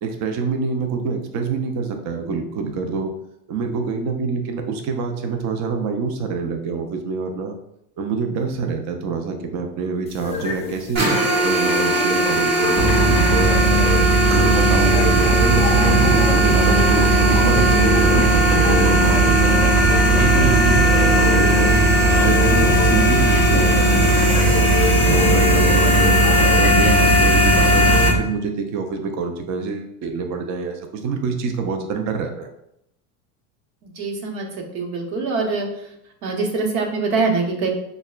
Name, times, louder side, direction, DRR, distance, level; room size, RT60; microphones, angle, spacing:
voice 1, 0.0-3.1 3.5-7.5 8.0-11.1 11.4-13.6 14.3-19.7 20.1-21.8 22.2-24.1 25.1-26.2 26.5-32.5, right 4 dB, 40° right, 4 dB, 0.6 m, -26 dB
sound 1, 10.1-26.7, left 5 dB, 15° left, 0.4 m, -29 dB
sound 2, 11.0-28.1, equal, 60° right, 1.4 m, -19 dB
sound 3, 12.8-28.2, right 3 dB, 20° right, 1.4 m, -18 dB
voice 2, 33.8-35.7 36.2-37.7, right 4 dB, 75° right, 1 dB, 1.2 m, -24 dB
6.2 x 2.2 x 2.4 m, 0.78 s
supercardioid pair, 125°, 43 cm